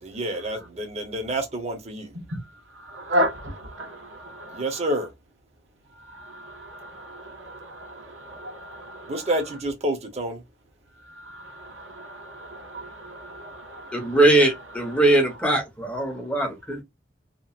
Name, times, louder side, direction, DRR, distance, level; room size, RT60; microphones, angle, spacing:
voice 1, 0.0-2.1 4.5-5.1 9.1-10.4, right 1 dB, 35° right, 0.8 m, -28 dB
voice 2, 2.9-4.6 6.3-9.1 11.6-13.9, equal, 90° right, 1.1 m, -33 dB
voice 3, 13.9-16.8, right 2 dB, 5° left, 0.8 m, -21 dB
2.8 x 2.4 x 2.4 m
head